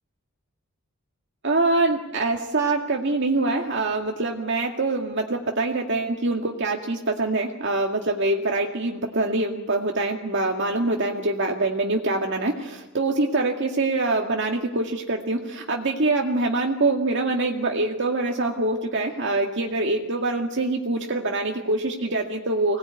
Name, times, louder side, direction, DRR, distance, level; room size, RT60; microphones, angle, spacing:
voice 1, 1.4-22.8, right 2 dB, 60° right, 1 dB, 2.2 m, -24 dB
25.5 x 19.0 x 9.4 m, 1.1 s
head